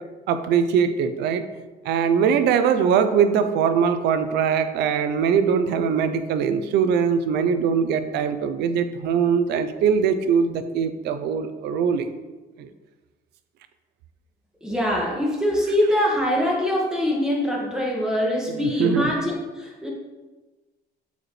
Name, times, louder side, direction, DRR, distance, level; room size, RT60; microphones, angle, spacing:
voice 1, 0.3-1.4 1.8-12.1 12.6-12.7 18.6-19.1, right 7 dB, 80° right, 10 dB, 0.6 m, -21 dB
voice 2, 14.6-19.9, left 1 dB, 5° right, -3 dB, 1.9 m, -23 dB
8.1 x 5.1 x 3.2 m, 1.2 s
cardioid pair, 110°, 17 cm